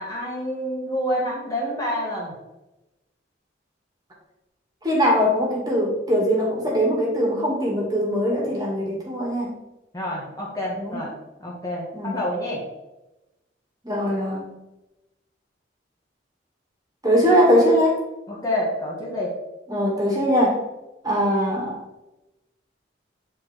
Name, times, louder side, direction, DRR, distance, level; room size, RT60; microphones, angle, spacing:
voice 1, 0.0-2.3 9.9-11.1 11.4-11.9 12.1-12.6 18.3-19.3, equal, 20° left, -4 dB, 1.5 m, -28 dB
voice 2, 4.8-9.5 10.8-11.0 11.9-12.2 13.8-14.5 17.0-18.0 19.7-20.6 21.0-21.8, equal, 20° right, -2 dB, 2.1 m, -21 dB
8.7 x 4.6 x 4.4 m, 0.99 s
head